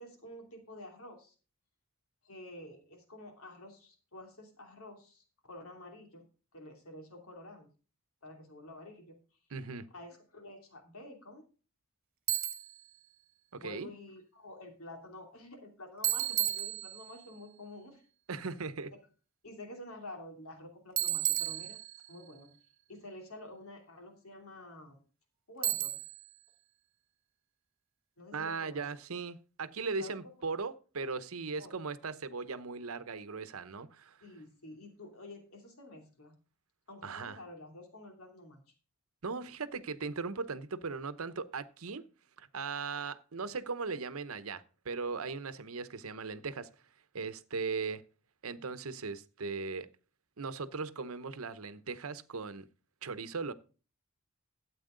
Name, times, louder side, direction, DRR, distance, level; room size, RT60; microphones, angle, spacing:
voice 1, 0.0-1.3 2.2-6.3 6.5-7.7 8.2-9.2 9.9-11.4 13.6-18.0 19.4-21.8 22.1-22.6 22.9-25.0 25.5-26.0 28.2-28.9 30.0-30.2 31.6-31.8 34.2-36.3 36.9-38.6, left 1 dB, 90° left, 2.9 m, -49 dB
voice 2, 9.5-9.9 13.5-13.9 18.3-18.9 28.3-34.2 37.0-37.4 39.2-42.1 42.4-46.7 47.1-48.0 48.4-49.9 50.4-52.7 53.0-53.5, right 4 dB, 85° right, 0.8 m, -38 dB
Bicycle, 12.3-12.8 16.0-17.3 21.0-22.2 25.6-26.3, right 14 dB, 45° right, 1.3 m, -33 dB
13.0 x 8.5 x 3.8 m
head